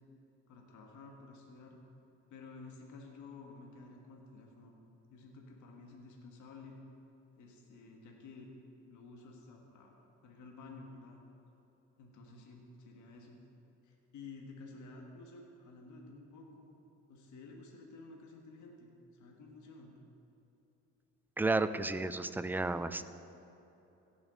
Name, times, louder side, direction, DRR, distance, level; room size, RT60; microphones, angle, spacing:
voice 1, 0.5-1.8 2.3-4.7 5.1-6.8 7.4-8.5 8.8-11.2 12.0-13.4 13.8-16.7 17.1-20.0, left 3 dB, 75° left, 0 dB, 1.4 m, -52 dB
voice 2, 21.4-23.0, right 2 dB, 5° right, 12 dB, 0.4 m, -32 dB
17.0 x 7.1 x 3.7 m, 3.0 s
cardioid pair, 90°, 30 cm